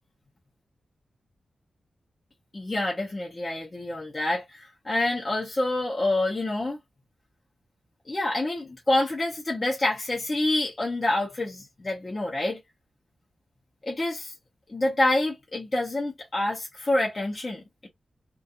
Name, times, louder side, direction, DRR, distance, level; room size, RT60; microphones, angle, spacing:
voice 1, 2.5-6.8 8.1-12.6 13.8-14.3 14.7-17.9, left 2 dB, 25° left, 0.6 m, -27 dB
2.4 x 2.3 x 2.7 m
wide cardioid pair, 140°, 0 cm